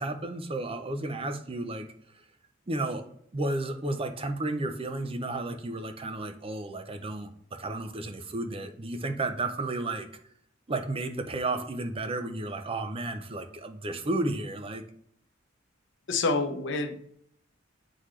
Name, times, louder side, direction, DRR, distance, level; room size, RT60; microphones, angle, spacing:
voice 1, 0.0-1.9 2.7-3.1 3.3-10.1 10.7-14.8, right 2 dB, 30° right, 8 dB, 0.6 m, -32 dB
voice 2, 16.1-17.0, left 3 dB, 65° left, 6 dB, 0.8 m, -27 dB
8.1 x 3.9 x 3.2 m, 0.67 s
head